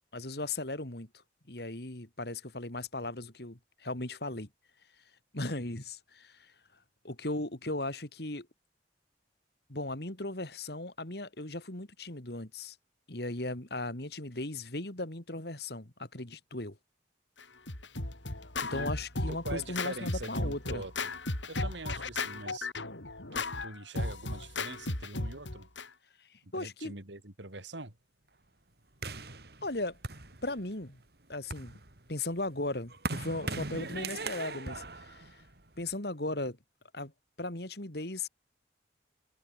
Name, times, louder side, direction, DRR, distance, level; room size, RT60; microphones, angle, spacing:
voice 1, 0.1-1.1 1.5-4.5 5.3-6.5 7.0-8.5 9.7-12.8 13.1-16.8 18.6-20.8 26.2-26.9 29.6-30.0 30.4-31.0 31.3-31.8 32.1-35.4 35.8-36.6 36.9-37.1 37.4-38.3, left 2 dB, 60° left, 2.8 m, -37 dB
Scratching (performance technique), 17.4-25.9, left 2 dB, 85° left, 4.6 m, -35 dB
voice 2, 19.3-20.9 21.5-22.7 23.3-25.7 26.4-28.0, right 2 dB, 80° right, 3.5 m, -43 dB
sound 1, 29.0-30.8 31.3-35.9, right 3 dB, 55° right, 2.8 m, -40 dB
head